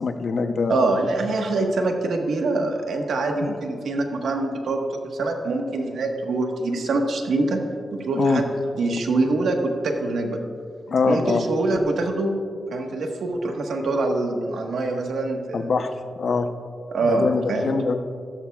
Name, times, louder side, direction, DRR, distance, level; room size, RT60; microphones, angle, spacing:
voice 1, 0.0-1.0 3.4-3.6 8.1-8.4 10.9-11.4 15.5-15.9 16.2-16.5 17.0-17.9, left 4 dB, 65° left, 8 dB, 0.8 m, -23 dB
voice 2, 0.7-7.6 7.9-8.5 8.8-10.4 11.1-12.3 12.7-15.7 16.9-17.7, right 2 dB, 90° right, 2 dB, 1.4 m, -24 dB
16.0 x 13.5 x 2.4 m, 2.2 s
wide cardioid pair, 95°, 0 cm